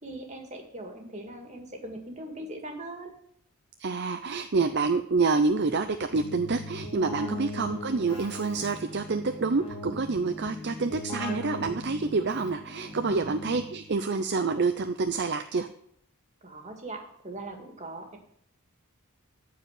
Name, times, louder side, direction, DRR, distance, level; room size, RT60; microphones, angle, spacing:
voice 1, 0.0-3.1 7.2-7.6 13.1-13.3 16.4-18.2, right 1 dB, 30° right, 3 dB, 2.2 m, -40 dB
voice 2, 3.8-15.7, right 4 dB, 50° right, 8 dB, 0.6 m, -27 dB
Keyboard (musical), 6.1-14.0, left 1 dB, 25° left, 3.7 m, -39 dB
14.5 x 4.9 x 9.0 m, 0.69 s
head